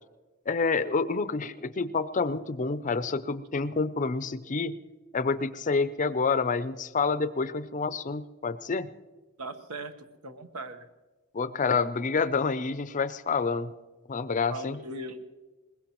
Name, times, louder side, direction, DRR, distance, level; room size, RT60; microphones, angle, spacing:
voice 1, 0.5-4.8 5.1-8.9 11.3-13.7 14.1-14.8, left 4 dB, 35° left, 14 dB, 0.5 m, -28 dB
voice 2, 9.4-9.9 10.2-10.9 14.5-15.3, right 2 dB, 85° right, 8 dB, 1.2 m, -39 dB
21.5 x 20.5 x 3.0 m, 1.3 s
head